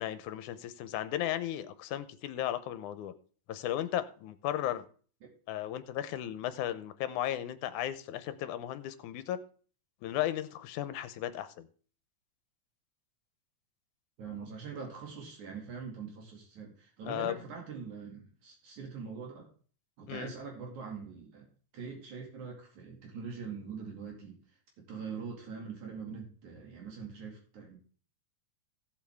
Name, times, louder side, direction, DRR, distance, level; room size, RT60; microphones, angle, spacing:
voice 1, 0.0-3.1 3.5-4.9 5.5-9.4 10.0-11.7 17.1-17.4 20.1-20.3, left 12 dB, 80° left, 2.2 m, -35 dB
voice 2, 14.2-19.5 20.0-21.5 21.7-24.4 24.8-27.8, right 5 dB, 70° right, 3.6 m, -43 dB
16.0 x 7.5 x 3.5 m
omnidirectional pair, 3.5 m